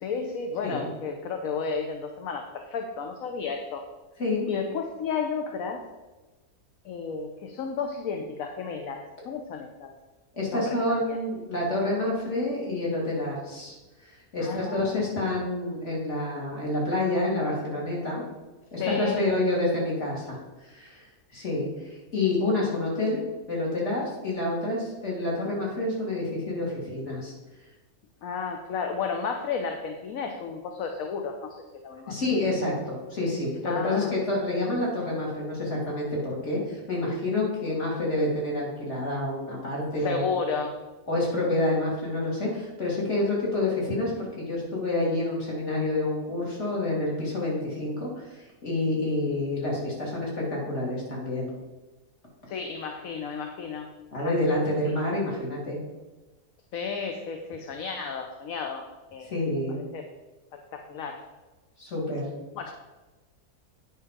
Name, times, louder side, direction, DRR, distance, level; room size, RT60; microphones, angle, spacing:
voice 1, 0.0-3.8 4.5-5.8 6.8-9.9 10.5-11.2 14.4-15.1 18.8-19.2 28.2-32.1 33.6-34.1 40.0-40.7 52.5-53.9 54.2-55.0 56.7-58.8 59.1-59.3 59.7-60.0 60.5-61.2 62.5-62.7, left 5 dB, 70° left, 4 dB, 1.2 m, -33 dB
voice 2, 10.3-13.7 14.0-18.2 18.7-20.4 20.6-21.1 21.3-23.2 23.5-27.3 32.1-40.2 41.1-51.5 54.1-55.8 59.3-59.8 61.8-62.3, left 2 dB, 50° left, -5 dB, 3.2 m, -28 dB
9.3 x 5.8 x 5.0 m, 1.1 s
omnidirectional pair, 1.6 m